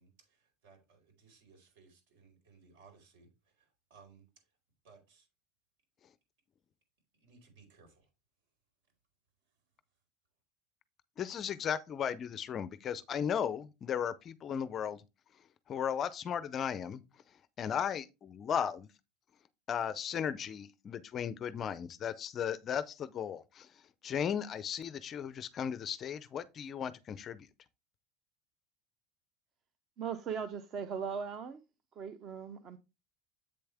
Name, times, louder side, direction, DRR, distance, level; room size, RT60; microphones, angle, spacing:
voice 1, 0.0-4.5 4.8-5.3 7.1-8.1, right 5 dB, 70° right, 4.4 m, -62 dB
voice 2, 11.2-15.0 15.7-17.0 17.6-18.9 19.7-23.7 24.0-27.5, left 8 dB, 25° left, 0.4 m, -36 dB
voice 3, 30.0-31.6 32.0-32.8, right 6 dB, 30° right, 0.6 m, -38 dB
7.9 x 6.9 x 3.4 m
cardioid pair, 170°, 0 cm